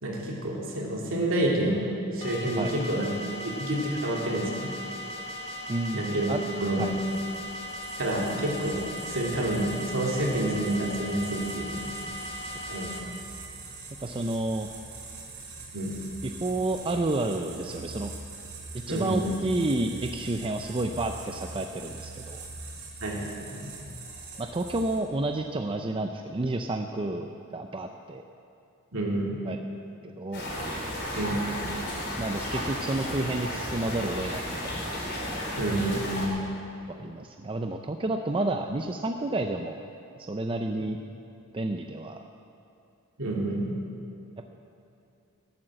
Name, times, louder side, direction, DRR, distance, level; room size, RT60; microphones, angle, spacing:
voice 1, 0.0-3.1 3.4-4.7 5.9-6.3 6.6-6.8 8.0-11.9 12.7-12.9 15.7-15.9 18.9-19.4 23.0-23.7 28.9-29.4 31.1-31.4 35.6-36.3 40.8-40.9 43.2-43.7, right 1 dB, 60° right, -3 dB, 3.0 m, -29 dB
sound 1, 2.2-13.0, left 1 dB, 25° left, 1.5 m, -38 dB
voice 2, 5.7-6.4 6.8-6.9 14.0-14.7 16.2-18.1 18.9-22.4 24.4-28.2 29.5-29.6 30.0-30.4 32.2-35.0 36.9-39.8 40.2-41.0 41.5-42.2, right 2 dB, 25° right, 4 dB, 0.5 m, -30 dB
sound 2, 6.8-25.2, right 3 dB, 80° right, 4.1 m, -43 dB
sound 3, 30.3-36.3, left 1 dB, 50° left, 3.6 m, -33 dB
12.5 x 12.0 x 7.6 m, 2.6 s
head